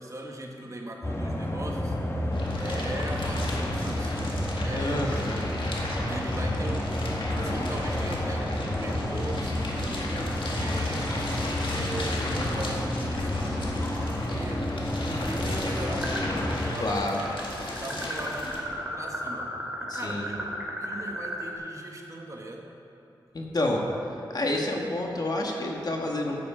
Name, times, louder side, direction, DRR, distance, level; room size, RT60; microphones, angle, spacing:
voice 1, 0.0-2.0 2.6-11.1 11.7-22.7, right 1 dB, 35° right, 1 dB, 1.4 m, -39 dB
sound 1, 1.0-16.7, left 1 dB, 30° left, 1.3 m, -30 dB
sound 2, 2.3-18.6, left 1 dB, 75° left, 1.7 m, -36 dB
voice 2, 4.7-5.6 16.8-17.2 19.9-20.3 23.3-23.9 24.3-26.4, left 1 dB, 50° left, 0 dB, 1.7 m, -29 dB
sound 3, 16.0-16.7 16.9-21.5, equal, 15° right, 2.4 m, -34 dB
12.5 x 8.5 x 5.0 m, 2.7 s
cardioid pair, 65°, 9 cm